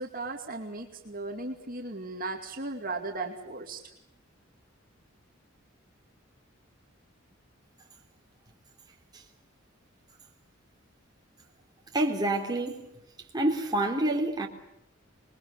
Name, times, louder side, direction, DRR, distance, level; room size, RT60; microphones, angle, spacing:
voice 1, 0.0-3.8, right 2 dB, 45° right, 2.5 m, -36 dB
voice 2, 11.9-12.9 13.3-14.5, right 1 dB, 20° right, 3.3 m, -27 dB
27.5 x 22.0 x 8.3 m
head